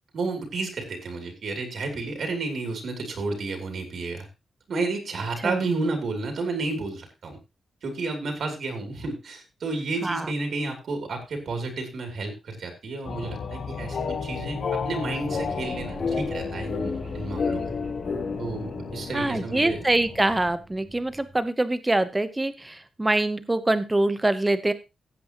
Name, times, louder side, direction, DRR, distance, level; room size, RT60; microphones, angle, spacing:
voice 1, 0.1-4.3 4.7-7.4 7.8-17.7 18.4-19.8, right 3 dB, 60° right, 4 dB, 2.9 m, -31 dB
sound 1, 13.0-20.5, left 5 dB, 50° left, 1.0 m, -31 dB
sound 2, 15.2-21.4, right 2 dB, 40° right, 2.0 m, -43 dB
voice 2, 19.1-24.7, right 2 dB, 10° right, 12 dB, 0.8 m, -24 dB
15.5 x 8.4 x 2.9 m, 0.26 s
wide cardioid pair, 175°, 0 cm